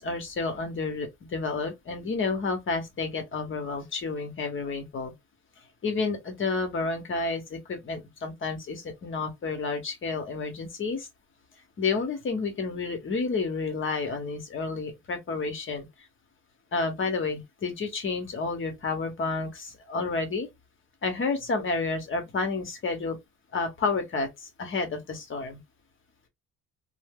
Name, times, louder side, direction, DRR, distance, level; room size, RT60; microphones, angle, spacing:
voice 1, 0.0-5.1 5.8-11.1 11.8-15.9 16.7-20.5 21.0-23.2 23.5-25.6, left 4 dB, 35° left, 0.9 m, -30 dB
2.7 x 2.0 x 3.4 m
cardioid pair, 135°, 35 cm